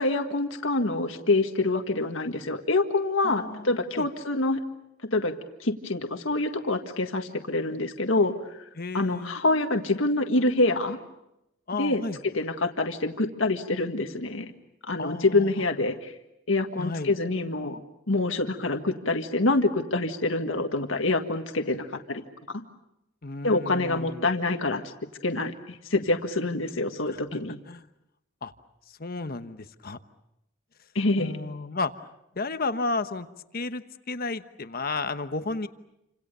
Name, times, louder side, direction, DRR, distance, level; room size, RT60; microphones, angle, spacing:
voice 1, 0.0-4.6 5.1-8.3 8.9-11.0 11.7-14.5 14.9-16.1 16.5-17.8 18.1-22.2 23.4-24.8 25.2-27.6 31.0-31.3, left 2 dB, 85° left, 5 dB, 1.7 m, -26 dB
voice 2, 3.2-3.7 4.0-4.1 8.8-9.3 11.7-12.2 15.0-15.5 16.8-17.1 23.2-24.2 27.1-27.2 27.7-27.8 28.4-28.5 28.9-30.0 31.2-31.9 32.3-33.3 33.5-35.7, left 3 dB, 50° left, 10 dB, 1.1 m, -32 dB
29.0 x 26.5 x 6.8 m, 0.86 s
head